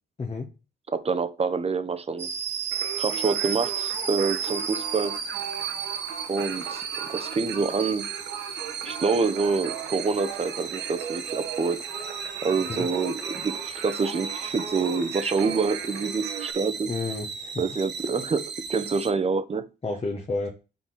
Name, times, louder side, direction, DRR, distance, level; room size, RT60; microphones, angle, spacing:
voice 1, 0.2-0.5 12.7-12.9 16.8-17.6 19.8-20.5, left 3 dB, 30° left, 1.4 m, -31 dB
voice 2, 0.9-2.3 3.0-5.2 6.3-8.1 8.8-11.8 12.4-16.9 17.6-19.7, right 4 dB, 30° right, 0.9 m, -27 dB
sound 1, 2.2-19.1, right 7 dB, 60° right, 1.5 m, -34 dB
Singing, 2.7-16.5, right 8 dB, 90° right, 1.2 m, -38 dB
5.8 x 4.3 x 5.8 m
cardioid pair, 90°, 20 cm